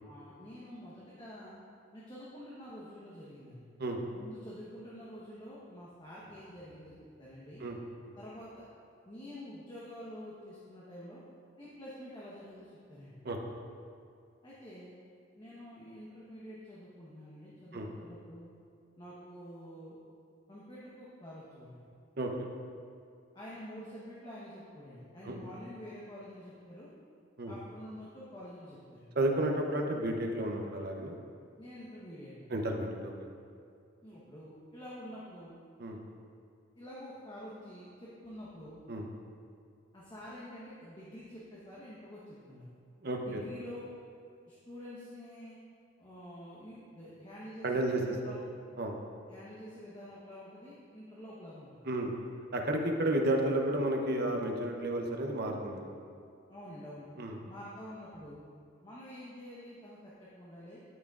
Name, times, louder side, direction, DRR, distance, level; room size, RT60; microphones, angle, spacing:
voice 1, 0.0-1.6 1.9-3.6 4.2-6.9 7.2-7.6 8.2-8.6 9.0-11.2 11.6-13.2 14.4-15.0 15.3-18.5 19.0-20.0 20.5-21.8 23.3-26.9 27.5-29.1 31.6-32.5 34.0-35.6 36.8-38.8 39.9-42.7 43.2-43.9 44.5-45.6 46.0-48.4 49.3-51.9 56.5-57.1 57.5-58.4 58.8-60.8, equal, 25° left, -8 dB, 1.1 m, -48 dB
voice 2, 22.2-22.5 25.2-25.4 27.4-27.5 29.1-31.2 32.5-33.1 35.8-36.0 38.9-39.0 43.0-43.4 47.6-48.3 48.8-48.9 51.9-52.1 52.5-55.9 57.2-57.4, right 1 dB, 55° right, 2 dB, 0.8 m, -32 dB
12.0 x 6.0 x 2.5 m, 2.3 s
head